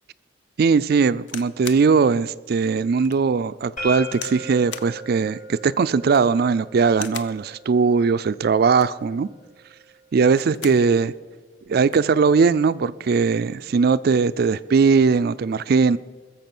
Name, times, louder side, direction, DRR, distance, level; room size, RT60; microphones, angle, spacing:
voice 1, 0.6-9.3 10.1-11.1 11.7-16.0, right 5 dB, 55° right, 0.4 m, -19 dB
sound 1, 1.3-1.9 2.5-2.6 3.0-3.2 4.1-4.4 4.7-4.9 6.0-6.4 6.9-7.4 8.6-9.1 10.2-10.9 11.3-11.4 11.6-12.1 12.9-13.2, left 8 dB, 80° left, 0.7 m, -38 dB
sound 2, 3.8-9.6, right 1 dB, 50° left, 5.1 m, -39 dB
21.5 x 7.2 x 6.0 m
head